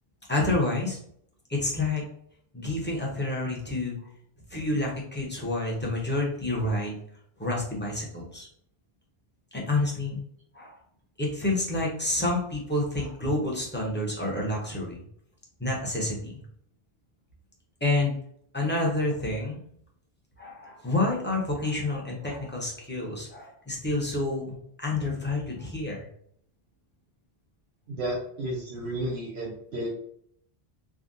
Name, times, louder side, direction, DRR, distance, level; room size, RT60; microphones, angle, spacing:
voice 1, 0.3-1.0 1.5-2.0 2.5-4.0 4.5-7.0 7.4-8.5 9.5-10.2 10.5-10.7 11.2-15.0 15.6-16.3 17.8-18.1 18.5-19.6 20.4-26.1, left 2 dB, 10° left, -3 dB, 0.7 m, -28 dB
voice 2, 27.9-29.9, right 1 dB, 85° right, -4 dB, 0.9 m, -32 dB
3.5 x 2.2 x 2.5 m, 0.66 s
omnidirectional pair, 1.0 m